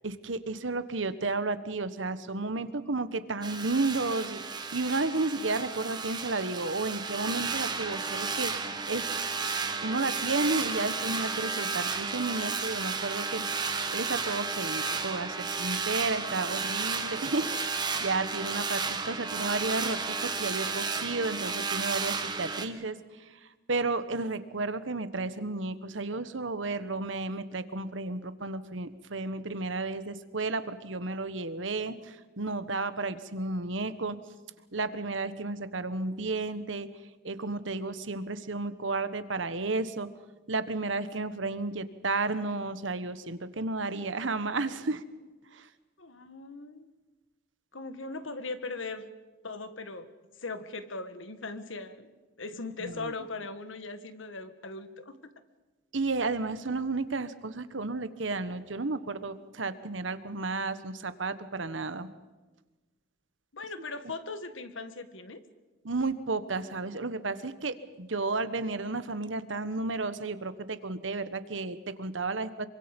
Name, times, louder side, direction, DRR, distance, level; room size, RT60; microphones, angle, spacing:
voice 1, 0.0-8.5 8.9-9.0 9.8-13.4 13.9-23.0 23.2-23.4 23.7-34.2 34.7-36.9 37.2-40.1 40.5-45.0 45.5-45.7 52.8-53.1 55.9-62.1 65.8-72.7, right 3 dB, 75° right, 12 dB, 1.3 m, -32 dB
sound 1, 3.4-22.7, right 4 dB, 20° right, 1.5 m, -33 dB
voice 2, 46.0-46.9 47.7-49.1 49.4-50.1 50.4-55.3 63.5-65.4, left 3 dB, 85° left, 10 dB, 1.8 m, -39 dB
26.5 x 24.5 x 5.4 m, 1.2 s
head